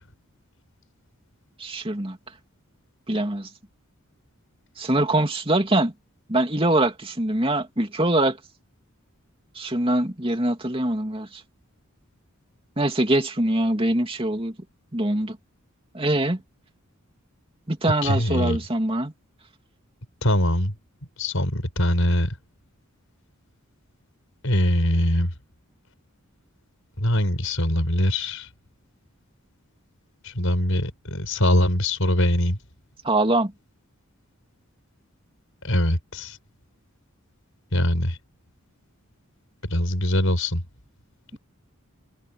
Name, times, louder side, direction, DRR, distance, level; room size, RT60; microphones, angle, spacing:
voice 1, 1.6-2.2 3.1-3.5 4.8-5.9 6.3-8.4 9.6-11.3 12.8-14.5 14.9-15.4 15.9-16.4 17.7-19.1 33.0-33.5, right 1 dB, 25° right, 2.6 m, -23 dB
voice 2, 18.0-18.6 20.2-20.7 21.2-22.3 24.4-25.3 27.0-28.5 30.2-32.6 35.6-36.4 37.7-38.2 39.7-40.6, left 1 dB, 65° left, 5.7 m, -22 dB
head